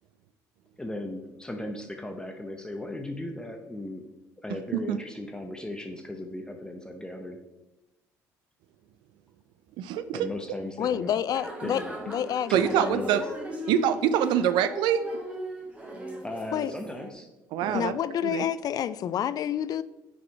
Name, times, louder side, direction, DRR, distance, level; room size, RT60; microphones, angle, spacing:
voice 1, 0.8-4.0 4.4-7.4 10.1-11.2 11.6-12.0 12.5-13.3 16.2-17.3 17.6-18.0, left 1 dB, 10° left, 4 dB, 0.7 m, -37 dB
voice 2, 9.8-10.2 12.5-13.2 13.7-15.0 17.5-17.9 18.2-18.4, right 10 dB, 70° right, 12 dB, 0.4 m, -24 dB
voice 3, 10.8-12.5 12.8-12.9 16.5-16.7 17.7-19.8, left 10 dB, 50° left, 15 dB, 0.3 m, -28 dB
sound 1, 11.3-17.1, equal, 15° right, 1.7 m, -38 dB
5.6 x 4.2 x 4.6 m, 1.0 s
hypercardioid pair, 65°, 8 cm